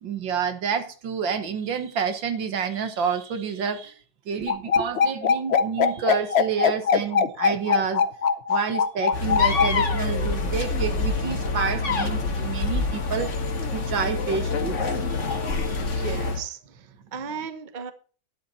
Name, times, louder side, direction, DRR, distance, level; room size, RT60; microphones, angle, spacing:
voice 1, 0.0-3.9 4.3-8.0 8.5-13.3 13.7-15.8, right 6 dB, 70° right, 9 dB, 2.0 m, -29 dB
sound 1, 4.5-9.7, left 6 dB, 60° left, 0.6 m, -21 dB
sound 2, 9.1-16.4, left 3 dB, 40° left, 1.7 m, -26 dB
voice 2, 15.9-17.9, right 6 dB, 30° right, 9 dB, 1.0 m, -36 dB
12.5 x 9.9 x 4.3 m, 0.39 s
omnidirectional pair, 2.1 m